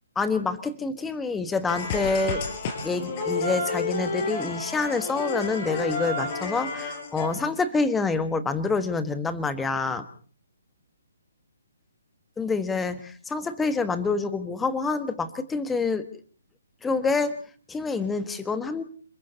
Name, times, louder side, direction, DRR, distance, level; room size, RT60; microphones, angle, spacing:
voice 1, 0.2-2.4 2.8-10.0 12.4-16.0 16.8-17.3 17.7-18.8, left 4 dB, 10° left, 11 dB, 1.4 m, -27 dB
sound 1, 1.7-7.3, left 3 dB, 35° left, 4.9 m, -30 dB
27.5 x 22.5 x 4.2 m, 0.43 s
hypercardioid pair, 150°, 0 cm